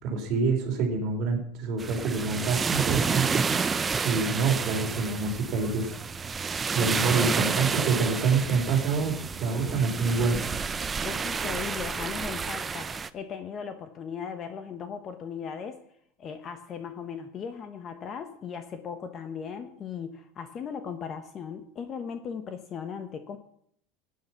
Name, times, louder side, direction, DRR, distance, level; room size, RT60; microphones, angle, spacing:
voice 1, 0.0-3.4 4.0-6.0 6.7-10.4, right 4 dB, 35° right, 2 dB, 3.9 m, -26 dB
sound 1, 1.8-13.1, right 5 dB, 15° right, 0.5 m, -30 dB
voice 2, 11.0-15.8 16.2-23.4, left 6 dB, 25° left, 9 dB, 1.1 m, -37 dB
18.5 x 9.6 x 5.8 m, 0.68 s
supercardioid pair, 175°, 0 cm